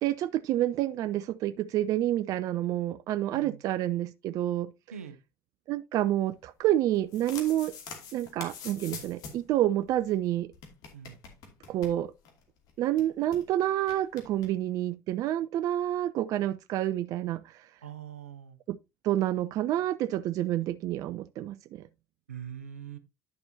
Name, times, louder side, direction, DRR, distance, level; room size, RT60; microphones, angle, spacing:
voice 1, 0.0-4.7 5.7-7.7 8.1-10.5 11.7-12.1 12.8-17.7 18.7-18.8 19.0-21.9, right 13 dB, 50° right, 0.4 m, -28 dB
sound 1, 6.9-9.5 9.8-9.9 10.1-10.2 10.5-12.4 12.7-12.8 13.0-13.4 13.9-14.5, left 6 dB, 55° left, 2.4 m, -45 dB
voice 2, 17.8-18.6 22.3-23.0, right 8 dB, 85° right, 0.7 m, -42 dB
10.5 x 6.7 x 2.7 m
figure-of-eight pair, 60°, 7 cm